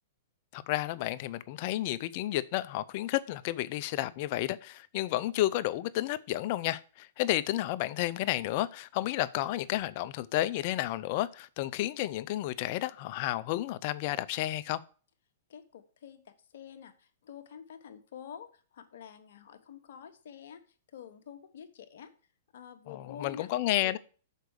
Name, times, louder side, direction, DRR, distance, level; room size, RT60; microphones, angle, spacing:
voice 1, 0.5-14.8 22.9-24.0, left 15 dB, 50° left, 0.5 m, -31 dB
voice 2, 15.5-20.6 20.9-22.1 22.5-23.5 23.8-24.0, left 8 dB, 65° left, 1.1 m, -48 dB
6.6 x 4.7 x 6.3 m
hypercardioid pair, 120°, 0 cm